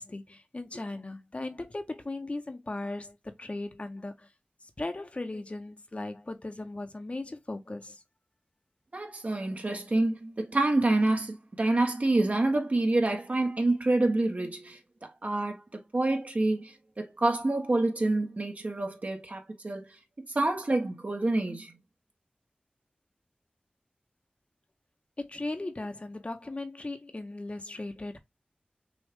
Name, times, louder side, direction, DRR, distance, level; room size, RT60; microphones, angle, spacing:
voice 1, 0.0-4.3 4.8-8.0 25.2-28.2, left 2 dB, 40° left, 0.8 m, -37 dB
voice 2, 8.9-14.8 15.2-19.9 20.3-21.8, right 2 dB, 50° right, 1.2 m, -27 dB
6.2 x 2.3 x 3.6 m
wide cardioid pair, 65°, 3 cm